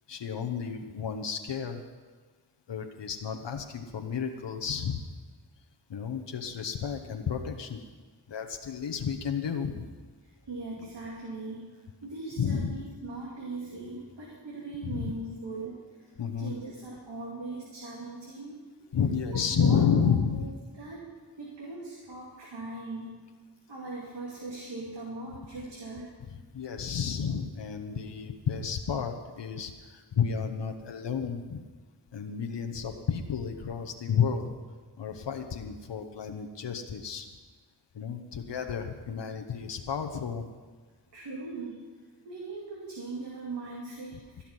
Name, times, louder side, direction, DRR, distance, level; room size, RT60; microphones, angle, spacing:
voice 1, 0.1-1.8 2.7-5.0 5.9-7.8 8.3-9.9 12.4-12.7 14.8-15.1 16.2-16.5 18.9-20.5 26.5-31.6 32.1-34.5 35.0-37.3 37.9-40.4 44.4-44.5, left 7 dB, 80° left, 5 dB, 1.0 m, -31 dB
voice 2, 10.2-18.9 19.3-20.5 20.8-23.2 23.7-26.1 41.1-41.9 42.2-44.4, right 2 dB, 80° right, -3 dB, 2.5 m, -40 dB
17.0 x 5.8 x 9.7 m, 1.4 s
cardioid pair, 55°, 42 cm